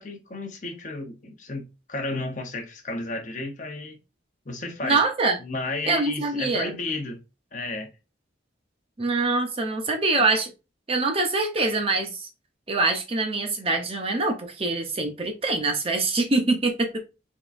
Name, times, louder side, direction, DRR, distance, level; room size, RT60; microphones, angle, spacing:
voice 1, 0.0-4.0 4.5-5.0 5.4-7.2 7.5-7.9, left 2 dB, 40° left, 0.7 m, -33 dB
voice 2, 4.8-5.4 5.8-6.7 9.0-10.5 10.9-12.3 12.7-17.0, right 3 dB, 30° right, 0.7 m, -24 dB
3.6 x 3.6 x 2.5 m
head